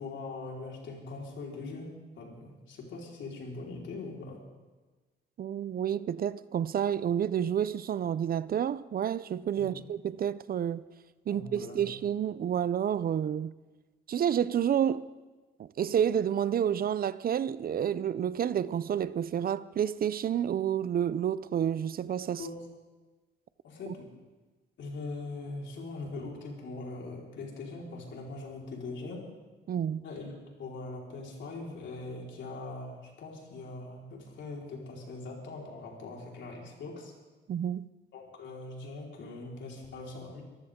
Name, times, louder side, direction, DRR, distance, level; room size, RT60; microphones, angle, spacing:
voice 1, 0.0-4.4 9.6-9.8 11.3-11.9 22.4-22.6 23.6-24.0 24.8-29.3 30.0-37.1 38.1-40.4, left 3 dB, 70° left, 4.5 m, -41 dB
voice 2, 5.4-10.9 11.3-13.5 14.1-15.1 15.6-22.4 23.9-24.0 29.7-30.0 37.5-37.9, right 9 dB, 50° right, 0.5 m, -29 dB
24.0 x 14.5 x 3.7 m
cardioid pair, 90°, 20 cm